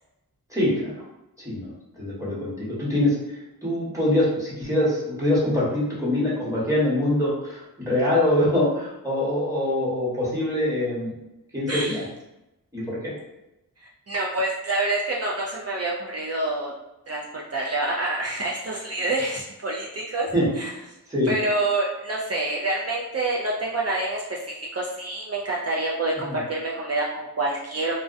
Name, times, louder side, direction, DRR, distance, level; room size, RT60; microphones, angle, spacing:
voice 1, 0.5-1.0 1.4-11.1 11.5-12.0 12.7-13.1 20.3-20.5 21.1-21.3 26.3-26.4, left 1 dB, 10° right, -8 dB, 1.1 m, -24 dB
voice 2, 11.7-12.0 13.8-16.7 17.1-20.3 20.6-20.7 21.3-27.9, right 2 dB, 45° right, -4 dB, 0.4 m, -27 dB
2.4 x 2.1 x 2.5 m, 0.95 s
wide cardioid pair, 65°, 36 cm